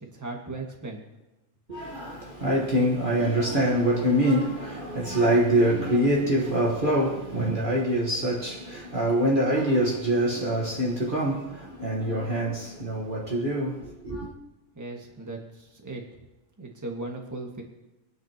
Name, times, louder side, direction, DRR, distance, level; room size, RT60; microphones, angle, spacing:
voice 1, 0.0-1.0 14.7-16.0 16.6-17.6, right 2 dB, 10° right, 1.7 m, -37 dB
voice 2, 1.7-14.3, right 1 dB, 35° right, 1.6 m, -25 dB
23.0 x 9.6 x 3.0 m
omnidirectional pair, 1.5 m